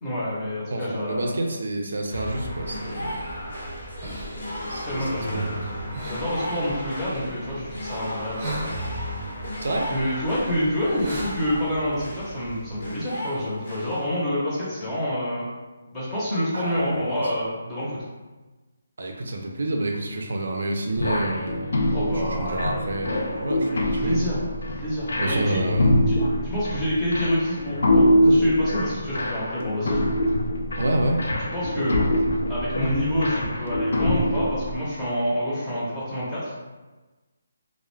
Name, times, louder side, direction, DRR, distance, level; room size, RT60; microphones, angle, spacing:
voice 1, 0.0-1.4 4.8-5.5 6.0-8.7 9.9-15.5 15.9-18.0 21.9-22.8 23.7-24.5 24.8-25.6 26.1-30.0 31.5-32.0 32.5-36.5, equal, 10° left, -9 dB, 0.7 m, -27 dB
voice 2, 0.7-3.2 4.7-5.7 9.6-9.9 16.5-17.3 19.0-21.7 22.1-24.2 25.2-26.0 30.7-31.2, right 1 dB, 70° right, 2 dB, 0.4 m, -28 dB
sound 1, 2.1-14.1, equal, 60° left, 0.8 m, -34 dB
sound 2, 2.6-11.6, right 1 dB, 25° right, 0.8 m, -40 dB
sound 3, 21.0-34.7, left 1 dB, 85° left, 0.5 m, -24 dB
2.3 x 2.0 x 3.1 m, 1.2 s
hypercardioid pair, 170°, 0 cm